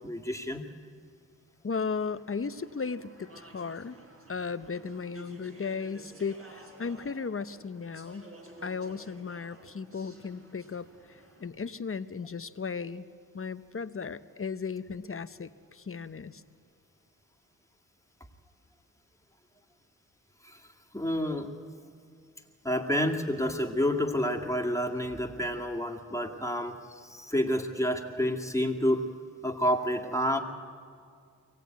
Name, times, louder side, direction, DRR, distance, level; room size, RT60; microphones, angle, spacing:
voice 1, 0.0-0.6 20.4-20.6 20.9-21.5 22.6-29.1 29.4-30.4, equal, 10° left, 2 dB, 2.3 m, -29 dB
voice 2, 1.6-4.0 4.3-8.3 8.6-13.0 13.3-16.4, left 5 dB, 40° left, 13 dB, 0.8 m, -36 dB
Speech / Chatter, 2.1-11.5, right 1 dB, 40° right, 4.7 m, -52 dB
24.0 x 17.0 x 9.3 m, 2.2 s
cardioid pair, 55°, 35 cm